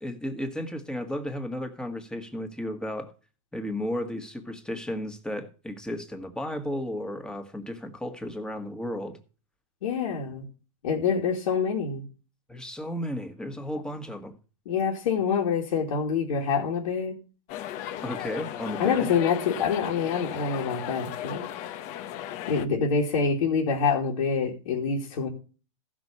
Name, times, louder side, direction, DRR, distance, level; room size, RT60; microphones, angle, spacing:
voice 1, 0.0-3.1 3.5-9.2 12.5-14.3 18.0-19.1, left 1 dB, 5° left, 6 dB, 1.7 m, -34 dB
voice 2, 9.8-10.4 10.8-12.0 14.7-17.1 18.8-21.5 22.5-25.3, left 6 dB, 80° left, -2 dB, 2.7 m, -26 dB
sound 1, 17.5-22.7, left 11 dB, 45° left, 1.0 m, -36 dB
15.5 x 6.2 x 5.5 m, 0.36 s
supercardioid pair, 130°, 18 cm